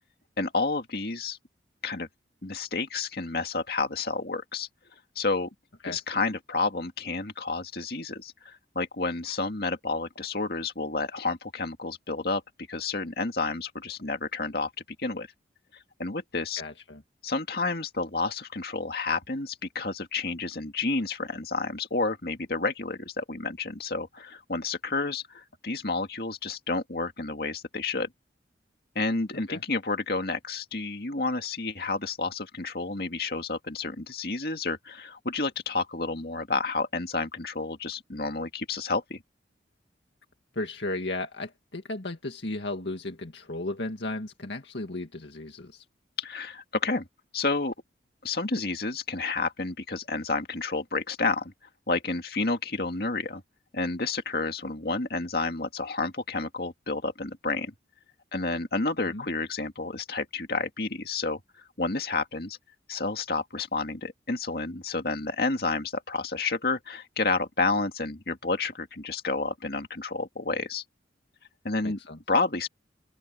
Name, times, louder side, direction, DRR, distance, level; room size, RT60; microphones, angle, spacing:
voice 1, 0.4-1.4 1.8-2.1 2.4-4.7 5.2-5.5 5.8-12.4 12.7-14.7 15.0-15.3 16.0-16.6 17.2-28.1 29.0-39.2 46.2-47.1 47.3-47.7 48.2-51.5 51.9-53.4 53.7-57.7 58.3-61.4 61.8-62.6 62.9-70.8 71.6-72.0 72.3-72.7, left 3 dB, 55° left, 2.3 m, -30 dB
voice 2, 16.6-17.0 29.5-29.6 40.6-45.8 59.1-59.2 71.8-72.2, left 2 dB, 75° left, 2.0 m, -35 dB
open air
head